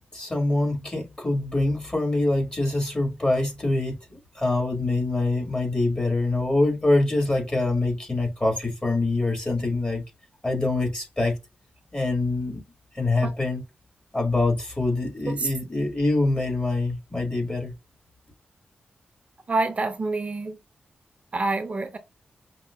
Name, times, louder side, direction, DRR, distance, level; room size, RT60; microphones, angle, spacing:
voice 1, 0.1-10.0 10.4-11.4 11.9-12.6 12.9-13.6 14.1-17.7, left 2 dB, 30° left, 1.8 m, -25 dB
voice 2, 19.5-20.6 21.3-22.0, right 3 dB, 40° right, 0.5 m, -26 dB
5.4 x 2.1 x 2.2 m
cardioid pair, 70°, 3 cm